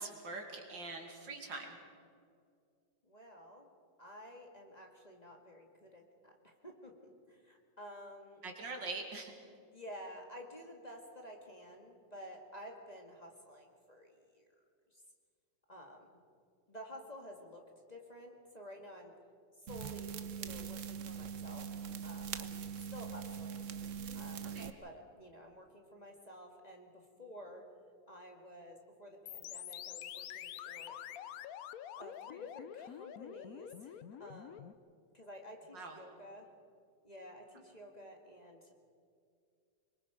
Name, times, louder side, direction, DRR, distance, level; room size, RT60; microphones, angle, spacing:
voice 1, 0.0-1.8 8.4-9.3 24.5-24.7 35.7-36.0, right 3 dB, 75° right, 2 dB, 3.1 m, -43 dB
voice 2, 3.0-3.7 4.0-7.0 7.3-8.4 9.7-14.5 14.9-15.0 15.7-16.1 16.7-19.1 19.6-22.6 22.9-23.7 24.1-27.7 28.1-31.0 32.0-34.7 35.1-36.5 37.0-38.8, equal, 20° left, 1 dB, 2.0 m, -52 dB
sound 1, 19.7-24.7, right 7 dB, 55° right, 1.0 m, -42 dB
sound 2, 29.3-34.7, left 11 dB, 65° left, 0.9 m, -47 dB
25.5 x 22.5 x 5.1 m, 2.3 s
omnidirectional pair, 2.0 m